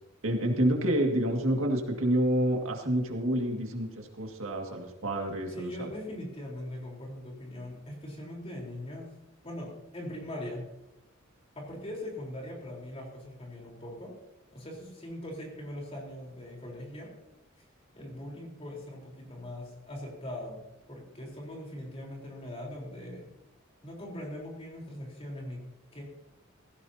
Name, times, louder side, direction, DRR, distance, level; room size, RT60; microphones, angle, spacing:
voice 1, 0.2-5.9, right 1 dB, 80° right, 2 dB, 2.1 m, -28 dB
voice 2, 5.5-9.1 9.4-10.7 11.5-14.2 14.5-17.1 17.6-17.7 18.0-20.6 20.9-23.3 23.8-25.6 25.9-26.0, left 1 dB, 30° left, -1 dB, 4.1 m, -41 dB
16.5 x 16.0 x 2.9 m, 0.92 s
head